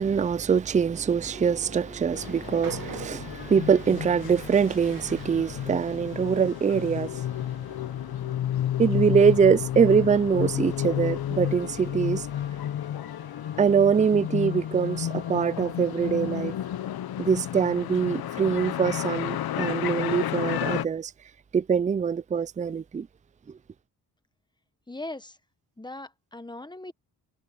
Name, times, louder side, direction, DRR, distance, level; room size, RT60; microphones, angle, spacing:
voice 1, 0.0-7.3 8.8-12.3 13.6-16.6 17.2-21.1 21.5-23.1, right 6 dB, 20° right, 0.4 m, -23 dB
sound 1, 1.2-8.7 9.8-10.2 11.4-16.8, left 4 dB, 30° left, 4.1 m, -51 dB
Train, 2.0-7.3, right 7 dB, 55° right, 2.0 m, -47 dB
sound 2, 2.1-20.9, left 11 dB, 65° left, 0.7 m, -31 dB
voice 2, 24.9-25.4 25.8-26.9, left 2 dB, 10° left, 1.4 m, -39 dB
cardioid pair, 100°, 40 cm